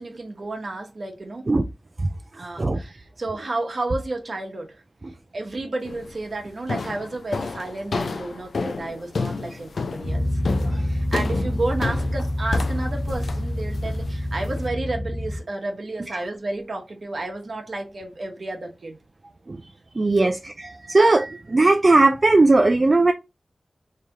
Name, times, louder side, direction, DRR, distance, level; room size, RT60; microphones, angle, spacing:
voice 1, 0.0-1.5 2.3-4.8 5.3-10.4 10.8-19.0 20.2-20.3, right 2 dB, 65° right, 1.0 m, -31 dB
sound 1, 5.9-6.2 6.7-14.7, left 4 dB, 85° left, 0.4 m, -30 dB
sound 2, 10.0-15.4, left 1 dB, 60° left, 0.7 m, -27 dB
voice 2, 20.0-23.1, right 2 dB, 45° right, 0.3 m, -18 dB
3.3 x 2.8 x 3.5 m
wide cardioid pair, 80°, 0 cm